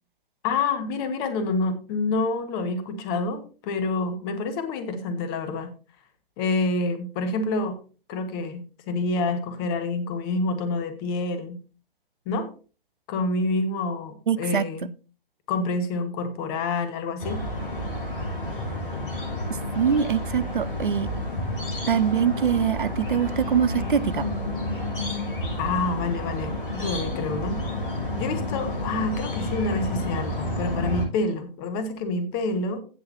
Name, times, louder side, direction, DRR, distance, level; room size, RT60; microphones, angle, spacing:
voice 1, 0.4-5.7 6.4-7.8 8.1-11.6 12.2-12.5 13.1-14.9 15.5-17.4 25.6-27.6 28.1-32.8, left 3 dB, 25° left, 1.6 m, -27 dB
voice 2, 14.3-14.7 19.7-21.1 21.9-24.3, right 8 dB, 60° right, 0.7 m, -23 dB
sound 1, 17.2-31.1, left 1 dB, 65° left, 6.5 m, -30 dB
16.0 x 6.5 x 2.8 m
figure-of-eight pair, 130°, 29 cm